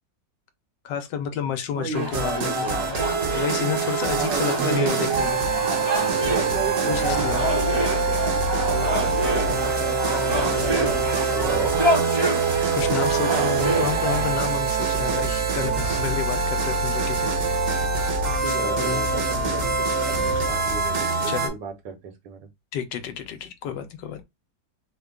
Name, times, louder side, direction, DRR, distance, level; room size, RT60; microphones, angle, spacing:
voice 1, 0.8-3.0 3.3-5.4 6.8-7.5 12.7-17.3 18.4-19.0 21.3-21.5 22.7-24.2, left 8 dB, 80° left, 1.2 m, -30 dB
voice 2, 1.8-2.9 4.1-5.0 6.2-11.8 12.8-13.9 18.4-19.7 20.1-22.4, right 5 dB, 80° right, 1.4 m, -34 dB
sound 1, 1.9-14.4, right 1 dB, 25° right, 0.5 m, -28 dB
sound 2, 2.1-21.5, right 4 dB, 55° right, 1.0 m, -24 dB
3.4 x 2.2 x 3.6 m
omnidirectional pair, 2.0 m